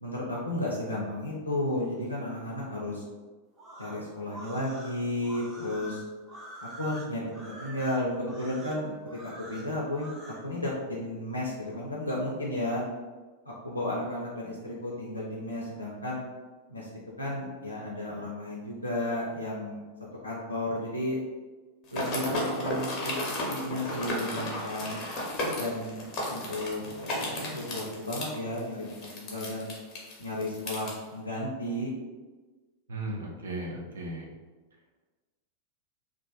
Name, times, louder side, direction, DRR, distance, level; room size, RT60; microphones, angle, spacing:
voice 1, 0.0-3.0 3.8-6.0 6.6-12.8 13.5-16.2 16.7-19.8 20.2-21.2 21.9-25.0 25.5-28.9 29.1-29.7 30.2-31.9, left 1 dB, 85° left, -6 dB, 0.4 m, -33 dB
sound 1, 3.5-10.4, right 1 dB, 25° right, 0.6 m, -45 dB
sound 2, 21.9-30.9, left 1 dB, 35° left, 0.7 m, -34 dB
voice 2, 32.9-34.3, right 1 dB, 70° right, -2 dB, 0.5 m, -36 dB
2.4 x 2.4 x 2.3 m, 1.3 s
figure-of-eight pair, 90°, 0 cm